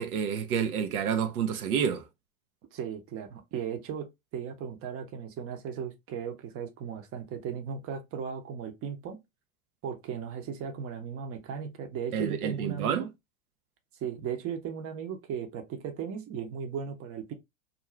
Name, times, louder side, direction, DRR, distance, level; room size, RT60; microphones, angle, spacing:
voice 1, 0.0-2.1 12.1-13.1, right 7 dB, 85° right, 0.6 m, -29 dB
voice 2, 2.7-9.2 9.8-13.1 14.0-17.3, right 7 dB, 35° right, 0.7 m, -36 dB
2.5 x 2.2 x 3.0 m
hypercardioid pair, 90°, 42 cm